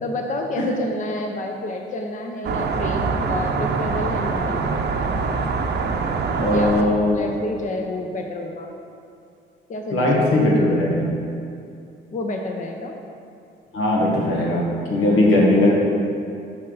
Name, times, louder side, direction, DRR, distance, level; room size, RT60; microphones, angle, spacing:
voice 1, 0.0-4.8 6.5-8.7 9.7-10.3 12.1-13.0, left 2 dB, 40° left, 3 dB, 0.7 m, -29 dB
sound 1, 2.4-6.8, right 4 dB, 55° right, 0.7 m, -24 dB
voice 2, 6.3-7.2 9.9-11.1 13.7-15.7, left 1 dB, 90° left, -3 dB, 1.7 m, -19 dB
8.8 x 5.6 x 4.0 m, 2.5 s
cardioid pair, 90°, 20 cm